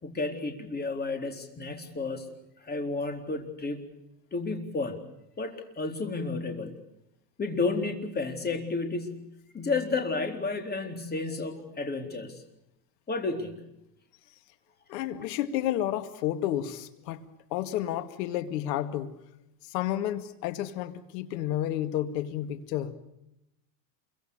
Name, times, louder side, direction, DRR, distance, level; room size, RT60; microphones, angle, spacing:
voice 1, 0.0-2.3 2.6-3.8 4.3-5.0 5.4-6.7 7.4-9.2 9.5-12.4 13.1-13.6 15.0-15.1, left 3 dB, 20° left, 5 dB, 4.0 m, -32 dB
voice 2, 14.9-17.2 17.5-19.2 19.7-22.9, left 12 dB, 75° left, 11 dB, 2.2 m, -31 dB
28.0 x 23.5 x 6.7 m, 0.84 s
supercardioid pair, 130°, 49 cm